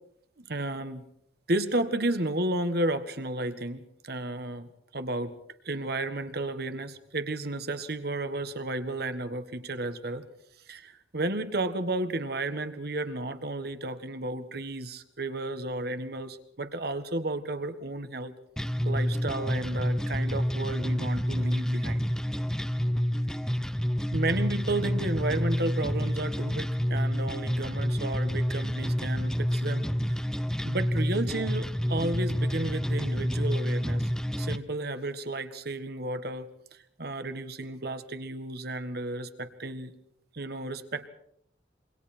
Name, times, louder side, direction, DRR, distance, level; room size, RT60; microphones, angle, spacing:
voice 1, 0.5-1.0 1.5-5.3 5.6-10.2 10.7-18.3 18.8-22.0 24.1-29.8 30.6-34.1 34.4-36.5 37.0-39.9 40.3-41.1, right 2 dB, 60° right, 10 dB, 1.7 m, -32 dB
sound 1, 18.6-34.6, equal, 5° left, 0.8 m, -29 dB
27.0 x 24.0 x 4.5 m, 0.70 s
head